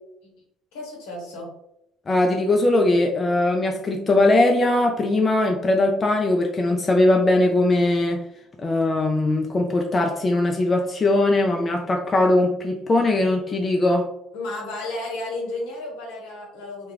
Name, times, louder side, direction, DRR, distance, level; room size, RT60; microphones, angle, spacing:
voice 1, 0.7-1.5 14.3-16.9, left 2 dB, 75° left, -2 dB, 0.8 m, -33 dB
voice 2, 2.1-8.2 8.6-14.1, left 2 dB, 30° left, 2 dB, 0.3 m, -20 dB
2.3 x 2.2 x 3.1 m, 0.82 s
hypercardioid pair, 60°, 0 cm